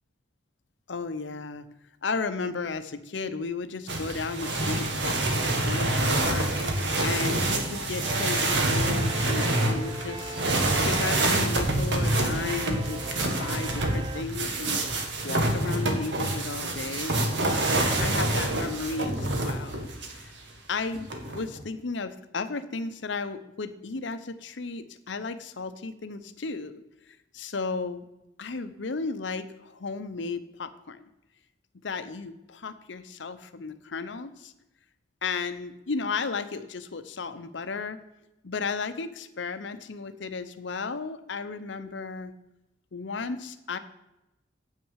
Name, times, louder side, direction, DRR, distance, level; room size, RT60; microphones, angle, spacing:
voice 1, 0.9-1.7 2.0-6.5 7.0-10.3 10.8-13.1 13.4-14.8 15.2-20.2 20.7-21.1 21.3-26.8 27.1-28.1 28.4-31.1 31.8-34.5 35.2-38.0 38.4-42.3 42.9-43.8, left 4 dB, 80° left, 11 dB, 0.7 m, -34 dB
sound 1, 3.9-20.2 20.9-21.6, right 2 dB, 75° right, 1.5 m, -27 dB
sound 2, 8.0-14.2, right 1 dB, 30° right, 0.5 m, -40 dB
8.3 x 6.3 x 6.3 m, 0.92 s
head